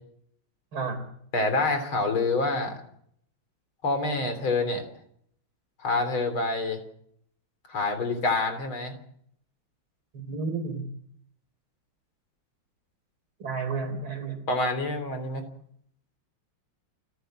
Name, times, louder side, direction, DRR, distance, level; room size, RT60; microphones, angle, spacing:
voice 1, 0.7-1.0 10.1-10.8 13.4-14.4, right 4 dB, 85° right, 7 dB, 4.5 m, -31 dB
voice 2, 1.3-2.8 3.8-4.8 5.8-6.8 7.7-9.0 14.5-15.4, left 3 dB, 90° left, 8 dB, 4.3 m, -27 dB
29.5 x 11.5 x 7.8 m, 0.68 s
omnidirectional pair, 2.2 m